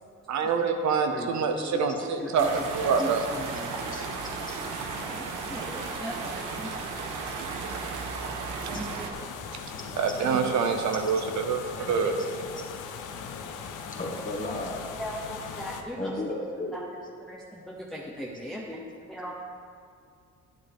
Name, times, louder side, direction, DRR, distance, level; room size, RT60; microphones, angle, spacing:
voice 1, 0.3-3.2 8.6-8.7 9.6-12.1, right 5 dB, 70° right, 5 dB, 0.9 m, -26 dB
voice 2, 1.1-3.7 5.0-6.3 6.6-6.7 8.7-9.1 11.8-12.2 15.0-16.1 16.7-16.9 17.2-19.4, equal, ahead, -3 dB, 0.9 m, -38 dB
sound 1, 2.4-9.1, right 4 dB, 90° right, 1.2 m, -34 dB
voice 3, 3.9-4.6 8.7-8.9 9.9-10.0 13.9-14.8 16.0-16.7, left 2 dB, 25° left, -1 dB, 1.7 m, -35 dB
sound 2, 9.1-15.8, left 6 dB, 85° left, 0.8 m, -39 dB
10.5 x 8.9 x 3.6 m, 2.3 s
cardioid pair, 90°, 30 cm